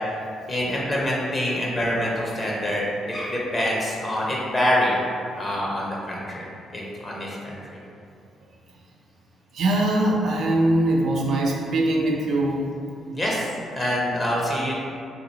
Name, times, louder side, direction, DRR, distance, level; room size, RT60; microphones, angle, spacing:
voice 1, 0.5-5.0 5.3-6.5 6.7-7.8 13.1-14.7, equal, 25° left, -4 dB, 0.7 m, -26 dB
voice 2, 9.5-12.7, right 1 dB, 70° right, -1 dB, 0.5 m, -22 dB
2.9 x 2.4 x 3.9 m, 2.4 s
cardioid pair, 90°, 0 cm